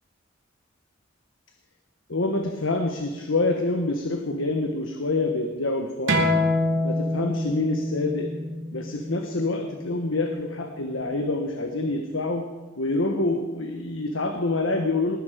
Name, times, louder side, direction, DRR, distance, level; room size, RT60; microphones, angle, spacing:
voice 1, 2.1-6.2 6.8-8.3 8.7-12.5 12.8-15.2, left 2 dB, 90° left, 4 dB, 1.4 m, -26 dB
sound 1, 6.1-11.3, left 1 dB, 70° right, 2.6 m, -27 dB
20.0 x 11.0 x 5.1 m, 1.3 s
head